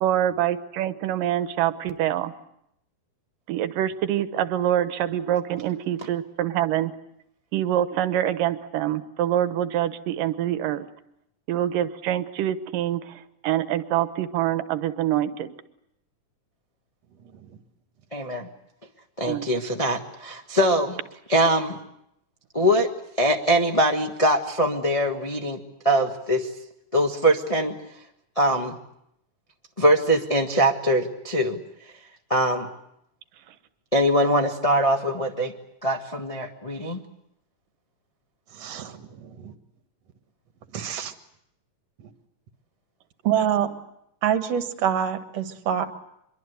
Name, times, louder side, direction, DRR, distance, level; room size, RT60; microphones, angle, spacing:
voice 1, 0.0-2.3 3.5-6.9 7.5-10.9 11.5-15.5 19.3-19.5, right 11 dB, 90° right, 11 dB, 2.8 m, -25 dB
voice 2, 18.1-18.5 19.2-21.0 21.3-21.8 22.5-22.9 23.2-25.6 25.8-26.5 26.9-27.8 28.3-28.8 29.8-31.6 32.3-32.7 33.9-35.5 35.8-37.0, equal, 40° left, 2 dB, 0.5 m, -22 dB
voice 3, 38.5-39.5 40.7-41.1 42.0-42.1 43.2-43.7 44.2-45.9, right 9 dB, 60° right, 8 dB, 2.4 m, -26 dB
24.5 x 23.0 x 8.2 m, 0.78 s
omnidirectional pair, 3.7 m